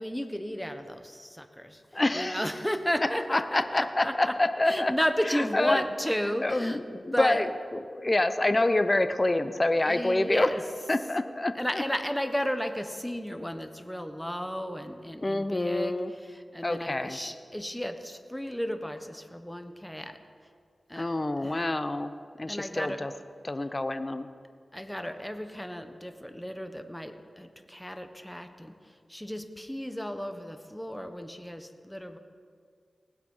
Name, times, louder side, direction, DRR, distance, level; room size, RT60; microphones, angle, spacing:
voice 1, 0.0-6.8 7.1-7.4 9.8-10.6 11.5-20.2 20.9-21.1 21.4-21.6 22.5-23.0 24.7-32.2, equal, 5° left, 7 dB, 1.2 m, -33 dB
voice 2, 1.9-2.4 3.3-4.9 5.3-5.8 6.4-10.5 10.9-11.8 15.2-16.1 16.6-17.2 21.0-22.1 22.4-23.1 23.4-24.3, left 2 dB, 30° left, 10 dB, 0.7 m, -27 dB
19.0 x 8.2 x 5.6 m, 2.2 s
cardioid pair, 45°, 0 cm